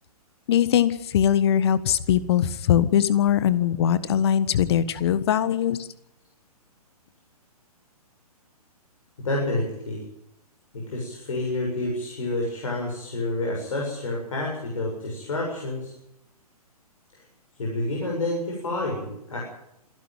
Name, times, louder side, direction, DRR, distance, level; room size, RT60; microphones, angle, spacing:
voice 1, 0.5-5.9, left 10 dB, 40° left, 16 dB, 1.5 m, -21 dB
voice 2, 9.2-10.0 10.7-15.9 17.1-17.2 17.6-19.4, left 2 dB, 60° left, -1 dB, 7.2 m, -29 dB
26.5 x 11.5 x 9.2 m, 0.82 s
figure-of-eight pair, 125°, 20 cm